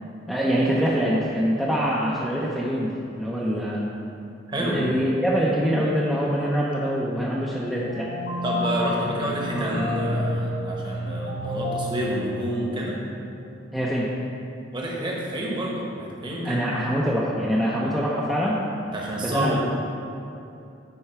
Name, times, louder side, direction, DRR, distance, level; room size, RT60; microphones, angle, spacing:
voice 1, 0.3-3.8 4.6-8.1 9.0-9.3 9.5-9.8 13.7-14.1 16.4-18.6 19.2-19.6, equal, ahead, -7 dB, 0.6 m, -24 dB
voice 2, 4.5-4.8 8.4-13.0 14.7-16.6 18.9-19.6, right 1 dB, 20° right, -3 dB, 1.1 m, -29 dB
sound 1, 7.8-13.3, left 1 dB, 45° left, 0.7 m, -30 dB
8.8 x 4.6 x 4.6 m, 2.7 s
head